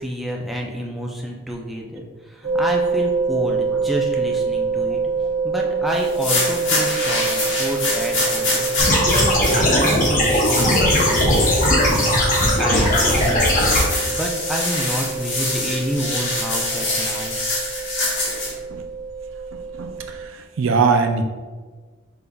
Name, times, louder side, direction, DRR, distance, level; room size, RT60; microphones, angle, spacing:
voice 1, 0.0-5.0 5.4-17.3, equal, ahead, -2 dB, 0.4 m, -29 dB
sound 1, 2.4-20.3, right 5 dB, 55° right, 0.9 m, -26 dB
sound 2, 6.0-18.5, left 2 dB, 70° left, 1.3 m, -25 dB
sound 3, 8.8-13.8, left 1 dB, 45° left, 0.8 m, -18 dB
voice 2, 19.5-21.2, right 5 dB, 90° right, 6 dB, 0.4 m, -22 dB
5.2 x 3.5 x 2.3 m, 1.4 s
head